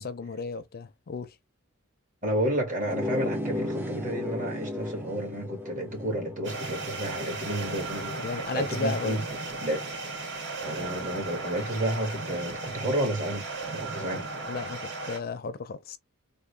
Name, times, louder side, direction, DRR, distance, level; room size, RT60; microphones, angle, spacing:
voice 1, 0.0-1.3 8.2-9.2 14.5-16.0, left 3 dB, 45° left, 0.5 m, -34 dB
voice 2, 2.2-9.2 9.6-9.8 10.6-14.3, right 1 dB, 40° right, 1.7 m, -31 dB
sound 1, 2.8-8.1, left 1 dB, 10° right, 0.5 m, -35 dB
sound 2, 6.4-15.2, right 3 dB, 55° right, 1.4 m, -36 dB
3.7 x 2.1 x 3.3 m
head